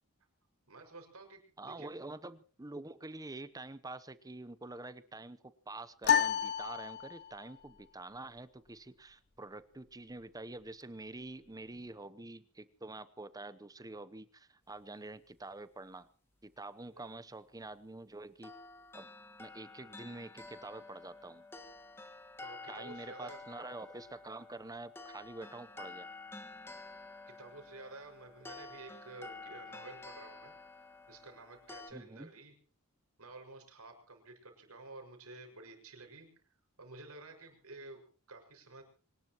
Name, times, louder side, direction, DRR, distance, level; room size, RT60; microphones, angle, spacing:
voice 1, 0.7-1.4 1.7-1.9 16.9-17.1 22.4-23.4 27.3-30.5 31.1-32.5 33.2-36.3 36.8-38.0 38.3-38.8, right 3 dB, 80° right, 4 dB, 5.9 m, -51 dB
voice 2, 1.6-5.4 5.7-16.1 16.4-18.5 18.9-19.1 19.4-21.4 22.7-26.1 31.9-32.3, right 2 dB, 15° right, 14 dB, 0.8 m, -47 dB
sound 1, 6.0-7.5, left 7 dB, 50° left, 0.8 m, -30 dB
sound 2, 18.4-31.9, left 3 dB, 10° left, 1.7 m, -50 dB
25.0 x 19.5 x 3.0 m, 0.41 s
head